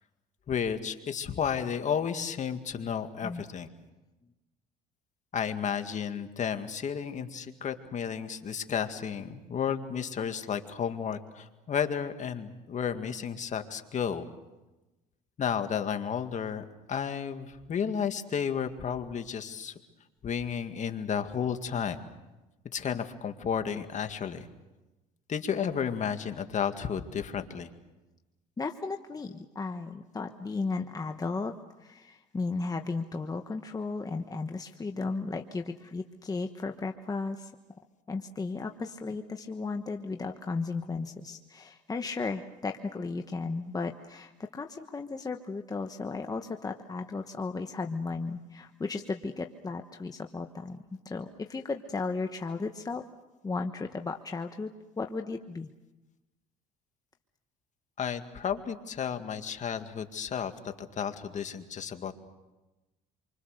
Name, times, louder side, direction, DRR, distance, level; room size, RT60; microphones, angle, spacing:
voice 1, 0.5-3.7 5.3-14.3 15.4-19.7 20.2-22.0 22.7-24.5 25.3-27.7 58.0-62.1, left 7 dB, 45° left, 7 dB, 2.0 m, -32 dB
voice 2, 28.6-31.5 31.8-37.5 38.1-53.0 53.4-55.7, left 3 dB, 20° left, 5 dB, 1.2 m, -35 dB
27.5 x 24.5 x 6.6 m, 1.1 s
supercardioid pair, 95°, 18 cm